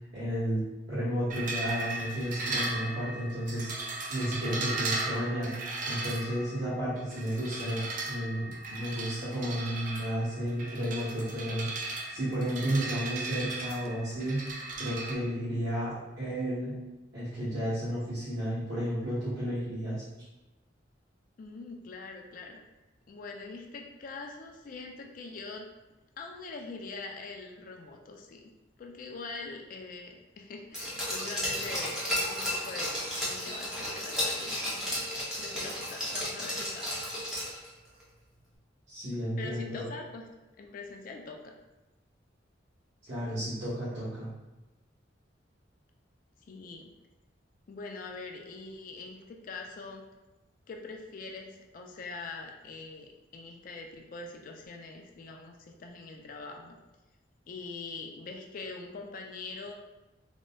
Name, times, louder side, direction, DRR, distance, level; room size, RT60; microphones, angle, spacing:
voice 1, 0.1-5.5 5.8-11.7 12.1-14.4 14.8-16.7 17.1-20.0 38.9-39.8 43.0-44.3, equal, 60° right, -12 dB, 1.0 m, -32 dB
sound 1, 1.3-15.1, right 2 dB, 45° right, 0.3 m, -37 dB
voice 2, 21.4-22.6 23.1-25.7 26.2-28.5 28.8-35.1 35.4-37.0 39.4-40.3 40.6-41.5 46.5-46.9 47.7-50.0 50.7-56.8 57.5-59.7, left 3 dB, 45° left, 3 dB, 0.3 m, -43 dB
Glass, 30.7-37.7 38.0-38.1, left 1 dB, 5° right, 0.6 m, -33 dB
3.7 x 2.1 x 2.2 m, 1.1 s
head